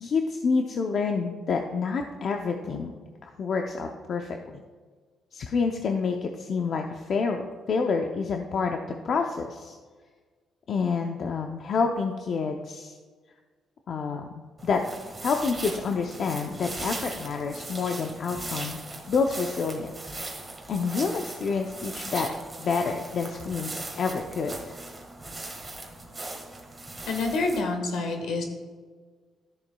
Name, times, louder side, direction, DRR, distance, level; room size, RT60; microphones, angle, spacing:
voice 1, 0.0-3.0 3.2-4.6 5.3-7.4 7.7-8.8 9.0-9.8 10.7-12.9 13.9-14.8 15.2-18.8 19.1-20.0 20.7-22.3 22.6-24.8, left 5 dB, 60° left, 3 dB, 0.6 m, -28 dB
sound 1, 14.6-27.6, right 2 dB, 20° right, 1.7 m, -39 dB
voice 2, 27.1-28.4, left 3 dB, 80° left, 4 dB, 1.5 m, -27 dB
13.0 x 6.9 x 2.3 m, 1.5 s
cardioid pair, 90°, 0 cm